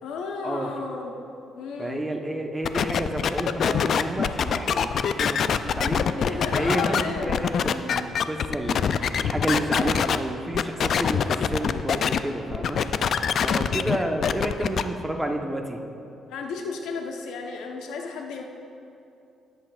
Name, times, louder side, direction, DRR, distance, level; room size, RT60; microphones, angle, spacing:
voice 1, 0.0-1.1 1.5-2.0 6.1-7.4 16.3-18.4, left 4 dB, 90° left, 2 dB, 1.0 m, -33 dB
voice 2, 1.8-15.8, right 1 dB, 10° right, 2 dB, 1.0 m, -30 dB
sound 1, 2.6-10.2 10.5-12.2 12.5-14.8, left 7 dB, 60° left, 0.4 m, -24 dB
18.0 x 7.9 x 2.5 m, 2.6 s
cardioid pair, 90°, 0 cm